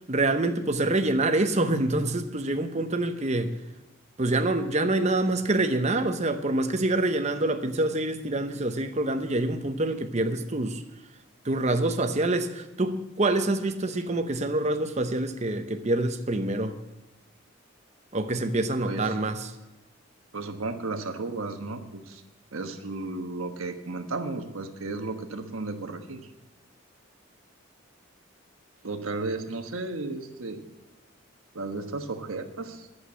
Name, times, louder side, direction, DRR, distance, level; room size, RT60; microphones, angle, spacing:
voice 1, 0.1-3.5 4.2-10.8 11.4-16.7 18.1-19.4, right 2 dB, 35° right, 0.8 m, -26 dB
voice 2, 18.9-19.2 20.3-22.2 22.5-26.3 28.8-30.6 31.5-32.9, right 3 dB, 80° right, 1.3 m, -34 dB
11.5 x 8.1 x 8.2 m
head